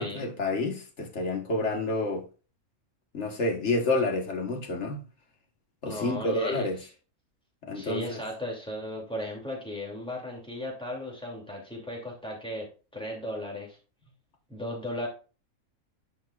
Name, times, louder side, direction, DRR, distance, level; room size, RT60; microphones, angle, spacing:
voice 1, 0.0-2.2 3.1-5.0 5.8-6.8 7.6-8.2, left 2 dB, 50° left, 1.9 m, -29 dB
voice 2, 5.8-6.7 7.7-13.8 14.5-15.1, left 1 dB, 5° left, 2.8 m, -36 dB
11.5 x 6.0 x 2.5 m
omnidirectional pair, 1.5 m